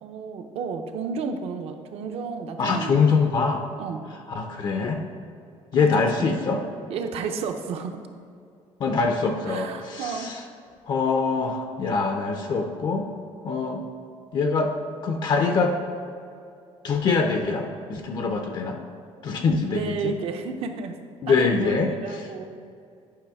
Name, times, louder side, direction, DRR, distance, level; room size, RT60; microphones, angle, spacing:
voice 1, 0.0-3.0 3.8-4.0 5.7-6.3 6.9-8.0 9.5-10.3 19.7-21.0 21.3-22.7, right 5 dB, 55° right, 6 dB, 0.7 m, -32 dB
voice 2, 2.6-3.6 4.3-5.0 5.7-6.6 8.8-10.4 10.9-13.1 13.4-13.8 14.3-14.7 15.0-15.7 16.8-18.8 19.2-20.1 21.2-22.3, left 4 dB, 35° left, 4 dB, 0.5 m, -24 dB
10.0 x 5.5 x 3.5 m, 2.4 s
cardioid pair, 170°, 12 cm